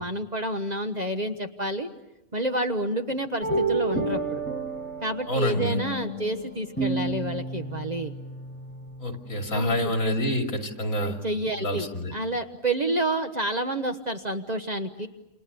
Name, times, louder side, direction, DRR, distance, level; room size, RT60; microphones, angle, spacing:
voice 1, 0.0-1.9 2.3-4.4 5.0-8.1 9.5-9.7 10.0-10.1 10.9-15.1, right 1 dB, 30° right, 6 dB, 1.2 m, -29 dB
sound 1, 3.4-9.9, right 2 dB, 5° left, 5.1 m, -31 dB
voice 2, 5.3-5.8 9.0-11.2 11.6-12.1, equal, 70° left, 3 dB, 3.2 m, -27 dB
29.5 x 27.5 x 7.0 m, 0.94 s
omnidirectional pair, 1.5 m